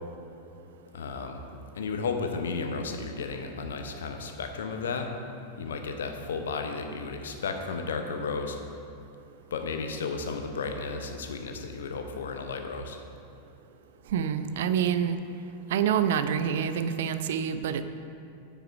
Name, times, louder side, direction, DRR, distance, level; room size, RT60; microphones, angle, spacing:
voice 1, 0.9-1.4 1.7-5.1 5.6-8.6 9.5-13.0, left 4 dB, 65° left, 5 dB, 0.7 m, -33 dB
voice 2, 14.1-15.2 15.7-17.8, right 8 dB, 55° right, 10 dB, 0.4 m, -27 dB
8.8 x 5.7 x 4.7 m, 2.6 s
figure-of-eight pair, 90°, 0 cm